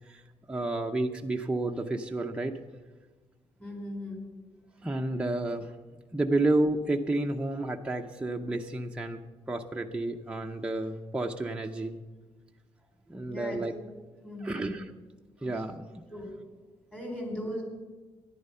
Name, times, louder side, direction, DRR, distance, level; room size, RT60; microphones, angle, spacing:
voice 1, 0.5-2.6 4.8-5.7 6.1-9.2 9.5-12.0 13.1-13.7 14.4-14.8 15.4-15.9, right 2 dB, 10° right, 2 dB, 0.6 m, -30 dB
voice 2, 3.6-4.2 13.3-13.8 14.2-14.8 15.4-15.6 16.1-16.3 16.9-17.6, left 1 dB, 15° left, 1 dB, 3.9 m, -38 dB
13.5 x 10.5 x 5.6 m, 1.3 s
cardioid pair, 125°, 12 cm